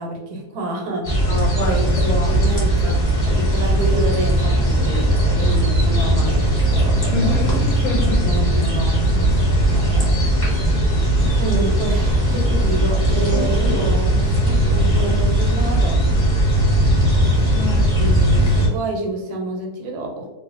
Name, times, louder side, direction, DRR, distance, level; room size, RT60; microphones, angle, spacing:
voice 1, 0.0-7.4 8.2-9.4 9.7-10.1 10.5-10.6 11.4-16.0 17.9-20.3, right 2 dB, 75° right, 1 dB, 1.1 m, -28 dB
sound 1, 1.0-18.7, right 1 dB, 35° left, 1.1 m, -18 dB
voice 2, 1.3-1.8 2.1-2.3 2.8-3.0 7.1-8.2 17.5-18.1, left 3 dB, 70° left, 0 dB, 1.0 m, -27 dB
2.6 x 2.3 x 2.5 m, 1.0 s
omnidirectional pair, 1.7 m